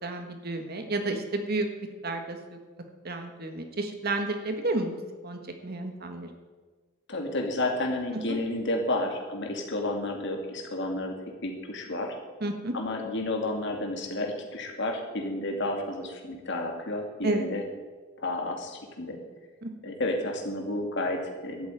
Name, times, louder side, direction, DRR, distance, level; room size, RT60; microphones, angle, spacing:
voice 1, 0.0-1.7 2.0-2.6 3.0-6.3 12.4-12.7 17.2-17.5 19.6-19.7, right 2 dB, 50° right, 6 dB, 1.6 m, -31 dB
voice 2, 7.1-12.2 12.7-17.6 18.2-19.2 19.8-21.7, left 1 dB, 60° left, 2 dB, 2.5 m, -31 dB
12.5 x 8.1 x 9.1 m, 1.4 s
head